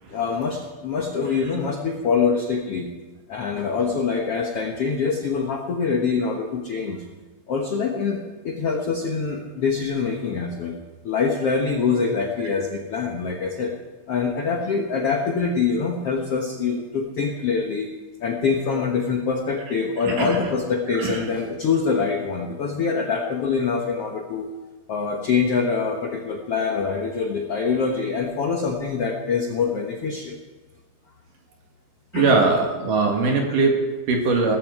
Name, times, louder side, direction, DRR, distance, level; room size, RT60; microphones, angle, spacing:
voice 1, 0.1-2.9 3.3-7.0 7.5-10.8 11.0-13.7 14.1-17.9 18.2-24.5 24.9-30.4 32.1-32.4, left 5 dB, 70° left, 2 dB, 1.4 m, -24 dB
voice 2, 1.3-1.6 20.0-20.5 20.9-21.3 32.1-34.6, right 3 dB, 60° right, 1 dB, 3.4 m, -22 dB
18.0 x 14.5 x 4.8 m, 1.2 s
omnidirectional pair, 4.4 m